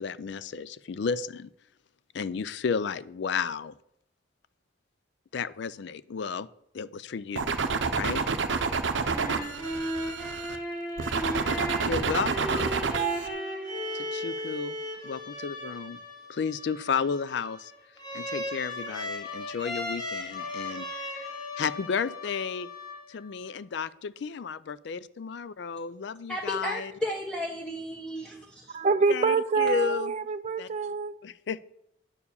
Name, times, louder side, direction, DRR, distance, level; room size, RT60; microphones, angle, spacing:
voice 1, 0.0-1.5 2.1-3.7 5.3-6.5 6.7-7.5 7.9-8.2 11.8-12.7 13.9-14.8 15.0-16.0 16.3-17.7 18.1-20.9 21.1-21.2 21.6-22.7 23.1-26.9 29.1-30.1 30.6-30.7 31.2-31.6, left 6 dB, 65° left, 17 dB, 0.4 m, -32 dB
sound 1, 7.4-10.6 11.0-13.3, right 5 dB, 70° right, 0.6 m, -28 dB
sound 2, 8.8-23.4, equal, 20° left, 2.0 m, -36 dB
voice 2, 26.3-28.8, equal, 5° left, -1 dB, 0.8 m, -34 dB
voice 3, 28.7-31.2, right 4 dB, 35° right, 10 dB, 0.3 m, -26 dB
9.6 x 4.7 x 7.0 m, 0.76 s
head